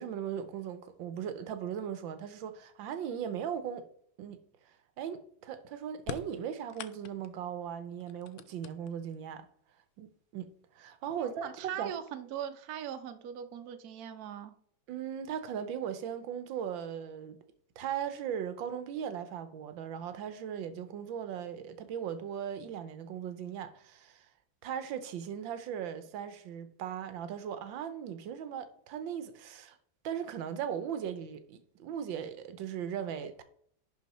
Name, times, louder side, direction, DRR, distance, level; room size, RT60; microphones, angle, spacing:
voice 1, 0.0-3.9 4.2-9.5 10.0-11.9 14.9-17.4 17.8-24.3 24.6-29.8 30.0-33.4, right 8 dB, 85° right, 1.6 m, -38 dB
sound 1, 6.0-7.4 8.0-9.2 10.2-10.3 11.3-11.4 11.9-12.4, left 9 dB, 85° left, 0.6 m, -44 dB
voice 2, 11.2-14.5, right 9 dB, 60° right, 1.2 m, -40 dB
10.5 x 4.4 x 4.2 m
omnidirectional pair, 2.0 m